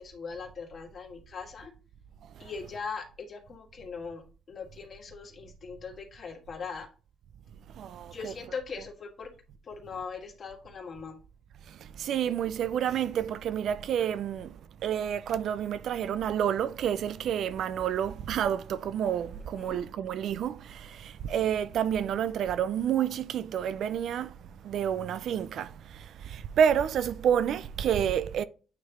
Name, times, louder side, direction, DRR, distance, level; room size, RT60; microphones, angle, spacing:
voice 1, 0.0-1.7 2.4-6.9 8.1-9.3 9.6-11.2 19.6-19.8, left 5 dB, 50° left, 2.1 m, -40 dB
voice 2, 7.8-8.3 11.7-24.4 24.6-28.4, right 9 dB, 70° right, 0.4 m, -29 dB
9.1 x 3.3 x 3.6 m
cardioid pair, 90°, 0 cm